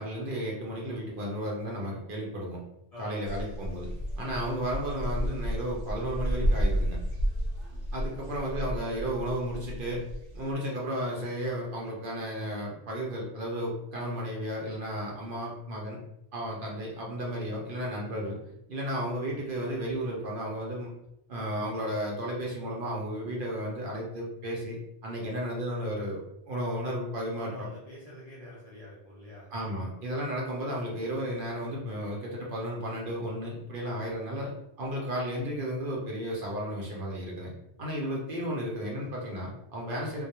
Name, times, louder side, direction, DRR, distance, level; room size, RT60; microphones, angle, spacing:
voice 1, 0.0-2.6 3.0-3.9 4.2-7.0 7.9-10.0 10.3-16.0 16.3-20.9 21.3-24.8 25.0-27.5 29.5-34.5 34.8-37.5 37.8-40.3, equal, 60° right, -3 dB, 0.7 m, -33 dB
voice 2, 2.9-3.3 8.2-8.4 27.4-29.5, left 1 dB, 50° left, -6 dB, 0.5 m, -46 dB
sound 1, 3.3-10.5, equal, 90° right, 0.9 m, -32 dB
2.2 x 2.0 x 2.8 m, 0.81 s
omnidirectional pair, 1.2 m